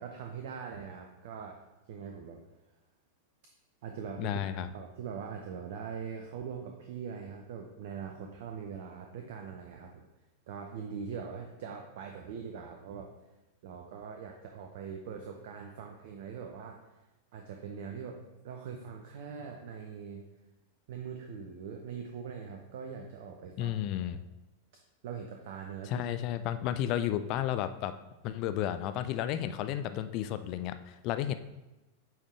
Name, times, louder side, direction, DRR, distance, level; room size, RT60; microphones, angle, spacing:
voice 1, 0.0-1.6 1.9-2.4 3.8-4.4 4.7-10.0 10.5-13.1 13.6-16.8 17.3-18.2 18.4-20.3 20.9-23.8 25.0-26.0, right 6 dB, 50° right, 2 dB, 0.6 m, -42 dB
voice 2, 4.2-4.7 23.6-24.2 25.9-27.9 28.2-31.3, left 11 dB, 40° left, 11 dB, 0.4 m, -32 dB
8.6 x 3.6 x 3.3 m, 1.0 s
figure-of-eight pair, 90°, 0 cm